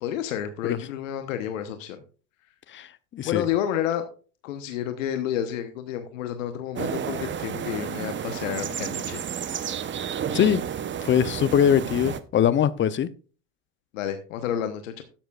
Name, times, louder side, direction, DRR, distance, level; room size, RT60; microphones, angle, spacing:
voice 1, 0.0-2.0 3.2-4.0 4.4-9.2 13.9-15.0, left 10 dB, 85° left, 1.1 m, -30 dB
voice 2, 2.7-3.4 10.3-10.6 11.0-13.1, left 9 dB, 30° left, 0.7 m, -22 dB
sound 1, 6.7-12.2, right 8 dB, 30° right, 0.9 m, -31 dB
12.5 x 10.0 x 2.4 m
supercardioid pair, 95°, 38 cm